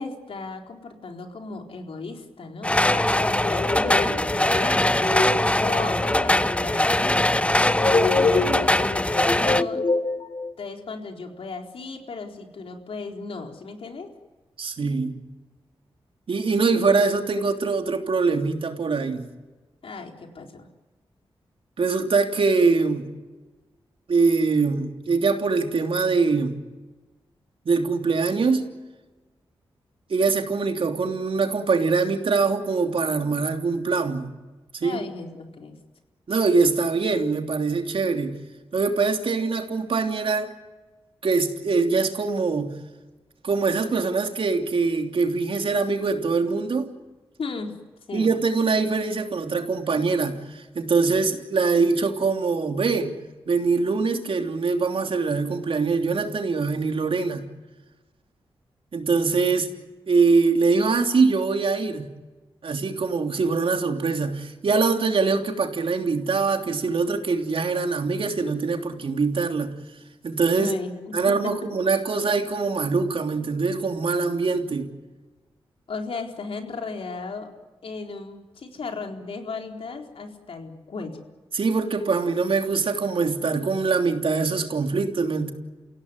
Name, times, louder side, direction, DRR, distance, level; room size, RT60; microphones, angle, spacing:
voice 1, 0.0-7.0 7.6-9.8 10.6-14.1 19.8-20.7 34.8-35.7 47.4-47.7 48.1-48.3 70.6-71.9 75.9-77.5 77.8-81.3, left 4 dB, 70° left, 3 dB, 4.2 m, -36 dB
sound 1, 2.6-9.6, left 1 dB, 10° left, 0.9 m, -22 dB
sound 2, 3.1-10.5, left 3 dB, 55° left, 3.8 m, -27 dB
voice 2, 14.6-15.1 16.3-19.3 21.8-23.1 24.1-26.6 27.6-28.7 30.1-34.3 34.7-35.0 36.3-38.3 38.7-40.5 41.2-42.8 43.4-46.9 48.1-53.1 53.5-57.4 58.9-59.7 60.1-62.1 62.6-69.7 70.2-70.7 71.1-74.9 81.5-85.5, right 4 dB, 65° right, 4 dB, 3.2 m, -23 dB
29.5 x 17.0 x 9.8 m, 1.2 s
cardioid pair, 45°, 10 cm